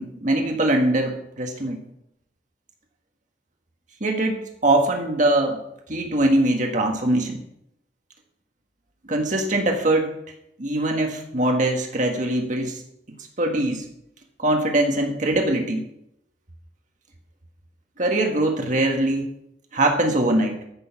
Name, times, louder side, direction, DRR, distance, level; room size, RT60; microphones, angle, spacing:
voice 1, 0.0-1.8 4.0-5.6 5.9-7.4 9.1-10.1 10.6-12.8 13.4-13.9 14.4-15.8 18.0-19.2 19.7-20.6, right 1 dB, 45° right, 2 dB, 1.6 m, -22 dB
14.0 x 6.4 x 5.9 m, 0.77 s
head